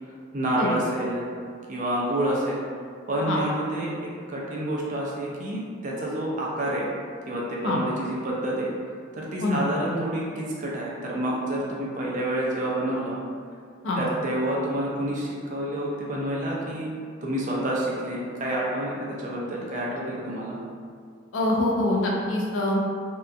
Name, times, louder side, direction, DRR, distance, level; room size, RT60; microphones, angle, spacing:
voice 1, 0.3-1.3 1.7-2.6 3.1-6.9 7.3-8.7 9.2-13.2 14.0-16.9 17.2-20.6, right 1 dB, 40° right, -4 dB, 0.4 m, -28 dB
voice 2, 21.3-22.8, left 2 dB, 70° left, -2 dB, 0.4 m, -24 dB
2.7 x 2.3 x 2.4 m, 2.1 s
head